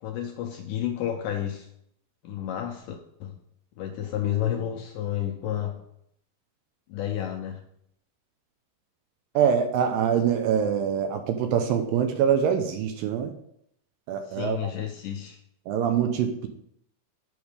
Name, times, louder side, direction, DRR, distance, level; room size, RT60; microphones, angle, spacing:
voice 1, 0.0-1.7 2.2-3.0 3.2-3.4 3.8-5.8 6.9-7.6 14.3-15.4, left 11 dB, 75° left, 2 dB, 2.0 m, -31 dB
voice 2, 9.4-13.3 14.1-14.7 15.7-16.5, right 8 dB, 80° right, 6 dB, 2.2 m, -24 dB
8.0 x 5.4 x 5.0 m, 0.72 s
omnidirectional pair, 4.5 m